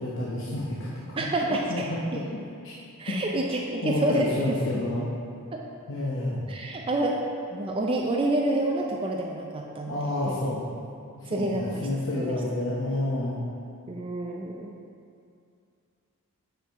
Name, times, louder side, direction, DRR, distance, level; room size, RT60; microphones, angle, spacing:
voice 1, 0.0-2.2 2.6-2.7 3.1-3.2 3.8-5.1 5.9-6.5 9.9-10.7 11.2-13.4, left 1 dB, 55° left, -6 dB, 0.8 m, -30 dB
voice 2, 1.2-1.9 3.0-4.6 5.5-5.6 6.5-10.3 11.3-11.9 12.2-12.3 12.9-13.0 13.9-14.7, right 1 dB, 25° right, 0 dB, 0.4 m, -28 dB
7.9 x 4.5 x 4.6 m, 2.4 s
head